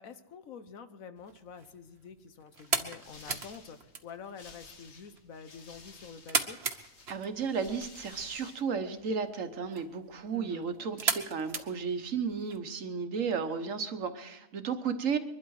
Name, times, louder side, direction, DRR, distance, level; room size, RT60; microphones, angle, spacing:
voice 1, 0.0-6.6 10.3-10.7, left 6 dB, 80° left, 10 dB, 1.4 m, -47 dB
sound 1, 1.2-12.6, right 5 dB, 55° right, 1.4 m, -38 dB
sound 2, 2.6-8.6, left 4 dB, 55° left, 1.6 m, -54 dB
voice 2, 7.1-15.2, right 6 dB, 70° right, 8 dB, 1.5 m, -33 dB
23.0 x 12.0 x 4.8 m, 0.98 s
omnidirectional pair, 1.4 m